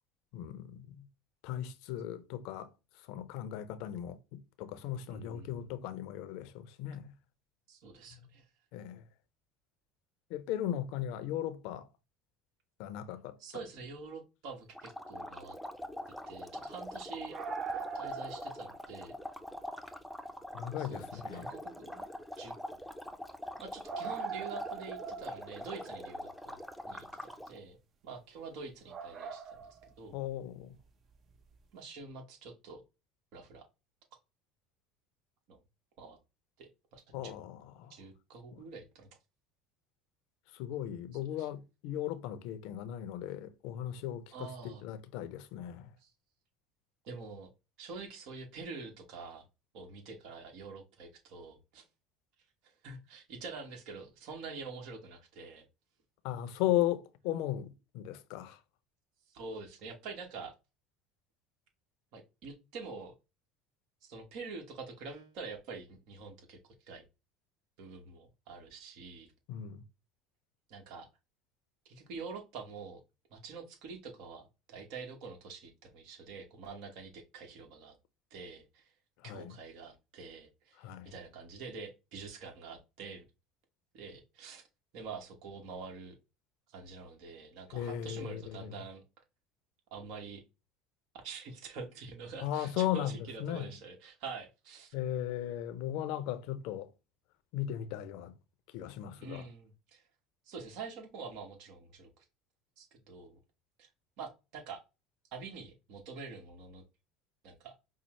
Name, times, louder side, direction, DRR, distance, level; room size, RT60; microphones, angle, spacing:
voice 1, 0.3-1.1 1.4-2.7 3.1-7.1 8.7-9.0 10.3-11.9 12.8-13.4 20.5-21.5 30.1-30.7 37.1-37.9 38.5-38.6 40.5-45.9 56.2-58.6 69.5-69.8 79.3-79.5 80.8-81.1 87.7-88.7 92.4-93.7 94.9-96.9 97.5-98.3 98.7-99.4, left 12 dB, 70° left, 0.5 m, -37 dB
voice 2, 5.1-5.7 7.7-8.4 13.4-15.5 16.3-17.4 17.7-19.1 20.8-22.1 22.4-22.5 23.6-26.6 26.9-27.8 28.0-30.2 31.7-32.8 33.3-33.6 35.5-35.6 36.0-36.2 36.6-37.3 37.9-39.1 41.4-41.5 44.3-44.8 46.0-46.1 47.0-47.5 47.8-49.4 49.7-51.8 52.8-55.6 59.3-60.5 62.1-63.1 64.0-66.6 66.8-67.0 67.8-69.3 70.7-71.1 71.8-73.0 73.3-77.9 78.3-78.9 79.2-80.8 81.0-83.2 83.9-84.6 84.9-86.1 86.7-89.0 89.9-90.4 91.2-95.0 99.2-100.0 100.4-102.2 102.8-103.4 103.8-103.9 104.2-104.8 105.3-106.8 107.4-107.7, right 4 dB, 65° right, 1.1 m, -46 dB
sound 1, 14.7-27.6, left 1 dB, ahead, 0.6 m, -44 dB
sound 2, 17.1-18.9 19.3-19.4 20.5-20.6 21.1-21.2 21.5-21.6 23.9-26.1 28.9-29.9 31.3-31.4, right 6 dB, 45° right, 0.6 m, -41 dB
5.3 x 2.0 x 3.1 m
supercardioid pair, 95°, 0 cm